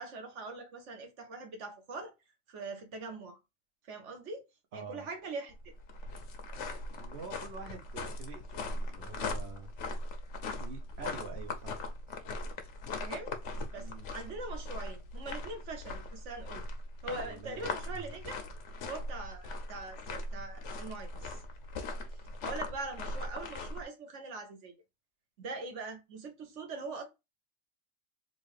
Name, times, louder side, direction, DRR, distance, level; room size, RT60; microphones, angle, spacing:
voice 1, 0.0-2.1 2.5-3.4 3.9-4.4 4.7-5.6 13.0-16.6 17.0-18.5 18.8-21.4 22.4-24.7 25.4-27.0, right 3 dB, 80° right, 1.3 m, -42 dB
voice 2, 4.7-5.1 6.9-9.7 10.6-11.7 12.1-12.2 13.8-14.1 17.1-17.6 17.9-18.0, right 5 dB, 65° right, 1.1 m, -46 dB
sound 1, 5.5-23.8, left 2 dB, 80° left, 1.1 m, -40 dB
3.9 x 2.5 x 3.2 m
omnidirectional pair, 1.2 m